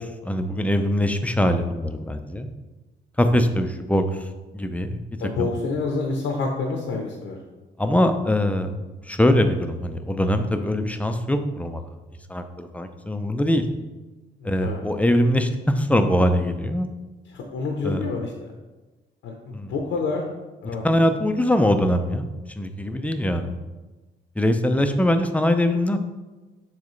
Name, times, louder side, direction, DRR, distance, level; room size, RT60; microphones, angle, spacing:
voice 1, 0.0-2.5 3.2-4.0 4.5-5.0 5.4-5.5 7.8-8.7 9.1-11.8 12.3-13.6 14.4-16.9 17.8-18.1 19.5-19.7 20.8-22.3 22.6-23.5 24.4-26.0, left 1 dB, 5° left, 7 dB, 0.5 m, -22 dB
voice 2, 5.2-7.4 14.4-14.8 17.3-18.5 19.2-20.2 20.6-20.9 21.1-21.2, left 3 dB, 75° left, 1 dB, 0.8 m, -28 dB
7.2 x 4.1 x 3.2 m, 1.2 s
cardioid pair, 90°, 20 cm